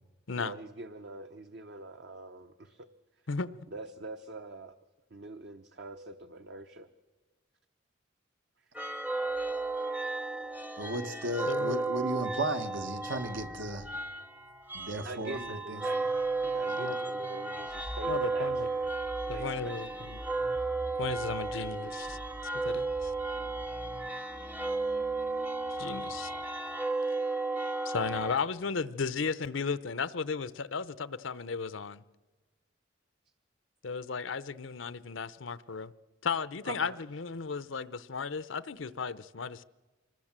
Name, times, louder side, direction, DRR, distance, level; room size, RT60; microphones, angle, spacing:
voice 1, 0.3-2.9 3.7-4.8 5.1-6.9 8.6-8.8 10.2-10.3 15.0-16.1 16.4-18.5 19.3-19.8 36.7-37.0, right 2 dB, 60° right, 0.8 m, -44 dB
voice 2, 3.3-3.6 11.5-11.8 16.8-17.0 18.1-18.7 19.3-20.2 21.0-22.2 22.6-23.1 25.8-26.3 27.8-32.0 33.8-35.9 36.2-39.6, left 5 dB, 80° left, 0.7 m, -35 dB
sound 1, 8.7-28.4, right 3 dB, 10° right, 0.7 m, -34 dB
voice 3, 10.8-13.9 14.7-15.8, right 1 dB, 80° right, 1.4 m, -35 dB
25.5 x 20.0 x 7.5 m
head